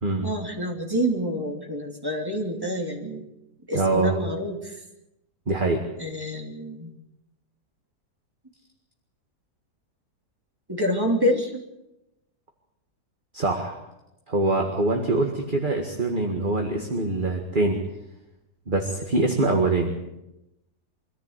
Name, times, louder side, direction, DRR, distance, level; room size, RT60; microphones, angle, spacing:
voice 1, 0.2-3.2 3.7-4.8 6.0-6.9 10.7-11.5, equal, 15° right, 1 dB, 3.2 m, -27 dB
voice 2, 3.7-4.2 5.5-5.8 13.3-13.8 14.3-17.8 18.7-19.9, right 2 dB, 30° right, 2 dB, 2.0 m, -24 dB
24.5 x 14.5 x 8.2 m, 0.92 s
omnidirectional pair, 1.7 m